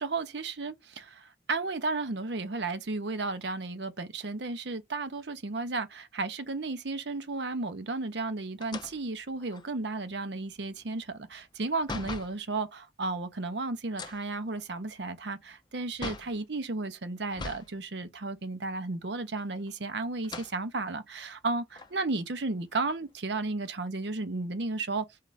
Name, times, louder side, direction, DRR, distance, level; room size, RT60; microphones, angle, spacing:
voice 1, 0.0-25.1, right 3 dB, 75° right, 0.8 m, -33 dB
sound 1, 8.6-12.4 13.9-16.4 17.3-17.7 18.1-18.2 19.3-19.8 20.2-20.6 21.2-21.3 21.7-23.1, left 3 dB, 25° left, 0.5 m, -42 dB
4.0 x 3.2 x 3.9 m
head